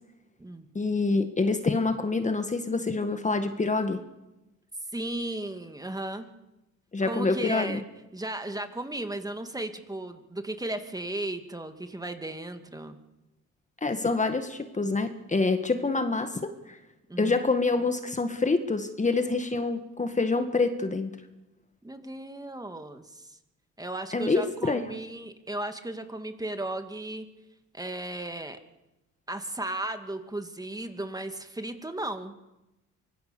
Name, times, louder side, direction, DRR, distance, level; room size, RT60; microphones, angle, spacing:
voice 1, 0.8-4.0 6.9-7.8 13.8-16.8 17.2-21.1 24.1-24.8, left 3 dB, 25° left, 8 dB, 1.8 m, -26 dB
voice 2, 4.9-6.3 7.0-7.8 8.1-13.0 17.1-17.4 21.8-23.4 23.8-27.3 27.7-28.6 29.3-32.4, right 1 dB, 10° right, 7 dB, 2.3 m, -35 dB
24.5 x 23.0 x 7.0 m, 0.97 s
cardioid pair, 90°, 30 cm